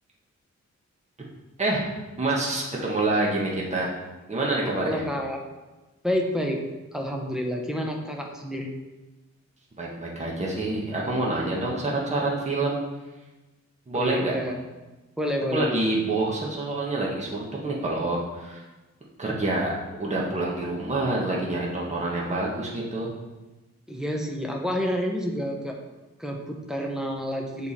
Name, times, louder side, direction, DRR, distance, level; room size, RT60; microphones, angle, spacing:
voice 1, 2.2-3.9 4.3-5.0 9.8-12.8 13.9-14.4 15.5-18.6 19.2-23.1, right 2 dB, 25° right, -3 dB, 1.3 m, -27 dB
voice 2, 4.6-5.4 6.0-6.6 6.9-8.7 13.9-14.6 15.2-15.8 23.9-25.8 26.2-27.7, equal, ahead, 1 dB, 1.0 m, -29 dB
7.0 x 4.5 x 4.2 m, 1.1 s
wide cardioid pair, 115°, 29 cm